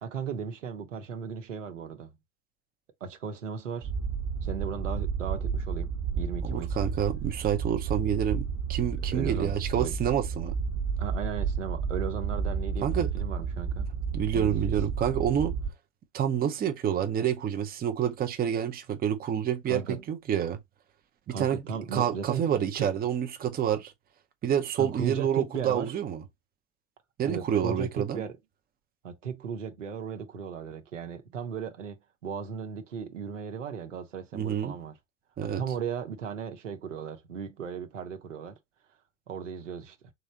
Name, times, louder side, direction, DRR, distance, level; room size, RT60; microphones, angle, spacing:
voice 1, 0.0-2.1 3.0-3.9 4.4-6.7 9.1-10.0 11.0-13.9 14.3-14.7 19.7-20.0 21.3-22.5 22.7-22.9 24.8-25.9 27.3-28.4 29.0-35.0 35.4-38.6 39.3-40.1, right 6 dB, 80° right, 1.0 m, -36 dB
sound 1, 3.8-15.7, right 6 dB, 40° right, 1.1 m, -31 dB
voice 2, 6.4-10.5 12.8-13.1 14.1-15.6 16.1-20.6 21.3-21.6 21.9-23.9 24.4-26.2 27.2-28.2 34.3-34.8 35.4-35.6, right 9 dB, 25° right, 0.7 m, -28 dB
3.8 x 3.2 x 2.8 m
figure-of-eight pair, 80°, 36 cm